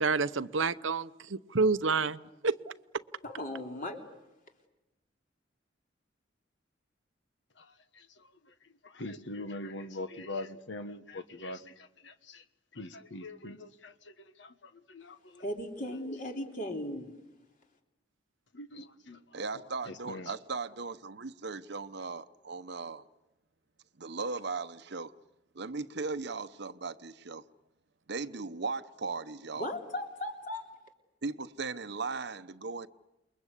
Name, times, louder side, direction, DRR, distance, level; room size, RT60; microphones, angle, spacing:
voice 1, 0.0-2.6, right 4 dB, 90° right, 0.9 m, -29 dB
voice 2, 3.2-4.0 15.4-17.1 29.6-30.6, left 1 dB, 45° left, 3.6 m, -37 dB
voice 3, 8.8-12.4 12.7-15.4 18.5-20.3, left 2 dB, 65° left, 1.4 m, -43 dB
voice 4, 19.3-23.0 24.0-25.1 25.5-27.4 28.1-29.7 31.2-32.9, right 4 dB, 60° right, 0.9 m, -37 dB
28.5 x 22.5 x 8.3 m
head